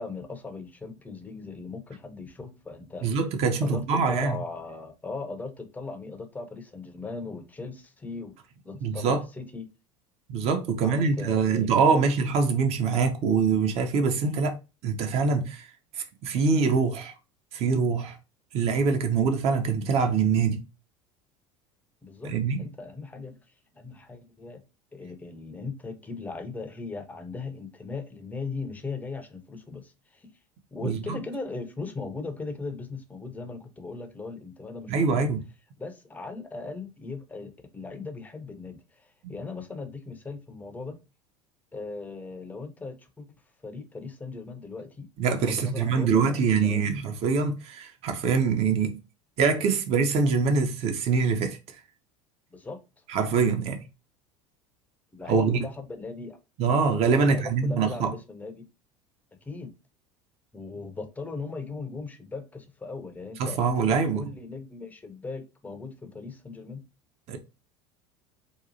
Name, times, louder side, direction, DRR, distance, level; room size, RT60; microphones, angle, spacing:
voice 1, 0.0-3.1 3.6-8.4 8.6-9.7 10.8-12.0 22.0-22.3 22.6-23.4 23.7-24.6 24.9-30.3 30.7-35.3 35.8-41.0 41.7-43.3 43.6-45.1 45.4-46.9 52.5-52.8 55.1-56.4 57.2-58.7 59.4-59.7 60.5-66.8, left 3 dB, 10° left, 0.5 m, -38 dB
voice 2, 3.0-4.4 8.8-9.2 10.3-14.6 14.8-15.7 16.2-17.1 17.5-18.2 18.5-20.6 22.2-22.6 30.8-31.2 34.9-35.4 39.2-39.3 45.2-49.0 49.4-51.6 53.1-53.8 55.3-55.6 56.6-58.1 63.4-64.3 67.3-67.4, right 5 dB, 40° right, 0.5 m, -24 dB
2.7 x 2.3 x 2.6 m
figure-of-eight pair, 70°, 16 cm